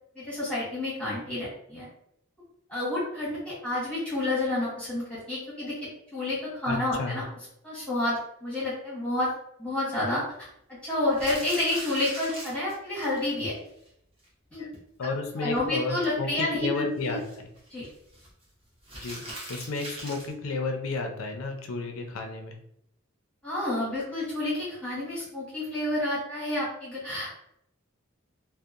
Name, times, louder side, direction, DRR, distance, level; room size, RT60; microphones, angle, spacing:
voice 1, 0.1-1.9 2.7-7.2 7.6-9.3 9.6-13.5 14.5-14.7 15.4-17.2 17.7-17.8 23.4-27.4, left 2 dB, 5° left, -9 dB, 1.1 m, -30 dB
voice 2, 6.7-7.2 14.6-14.7 15.0-17.5 19.0-19.2 19.5-22.5, left 3 dB, 70° left, 4 dB, 0.4 m, -32 dB
sound 1, 11.1-13.2 13.5-13.6 13.9-14.0 14.2-14.3 14.7-15.0 17.0-18.3 18.8-20.3, right 1 dB, 25° right, 0.7 m, -40 dB
2.7 x 2.0 x 2.4 m, 0.76 s
head